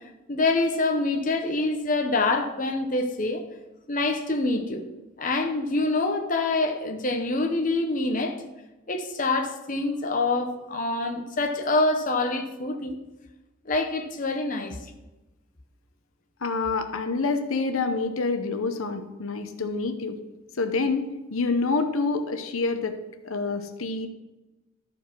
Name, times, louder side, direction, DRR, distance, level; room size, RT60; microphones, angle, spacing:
voice 1, 0.3-3.4 3.9-4.8 5.2-8.4 8.9-13.0 13.7-14.8, left 2 dB, 40° left, 4 dB, 0.9 m, -26 dB
voice 2, 16.4-20.2 20.6-23.0 23.2-24.1, left 3 dB, 80° left, 7 dB, 0.8 m, -27 dB
13.0 x 4.9 x 6.1 m, 1.1 s
head